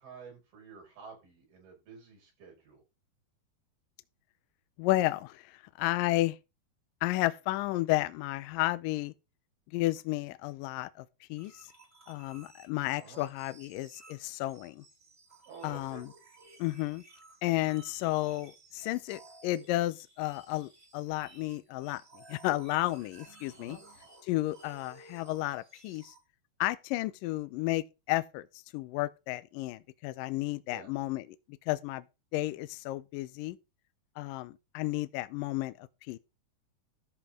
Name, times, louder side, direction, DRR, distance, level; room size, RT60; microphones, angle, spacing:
voice 1, 0.0-2.8 13.0-13.2 15.5-16.0 23.6-23.8 30.6-30.9, right 5 dB, 75° right, 7.9 m, -50 dB
voice 2, 4.8-6.4 7.0-9.1 9.7-11.1 11.3-11.5 12.1-14.8 15.6-16.1 16.6-17.0 17.4-23.8 24.2-26.1 26.6-31.2 31.7-32.0 32.3-33.6 34.2-36.2, left 17 dB, 80° left, 2.0 m, -32 dB
sound 1, 11.3-26.2, right 3 dB, 20° right, 3.0 m, -57 dB
13.0 x 4.8 x 5.1 m
omnidirectional pair, 4.4 m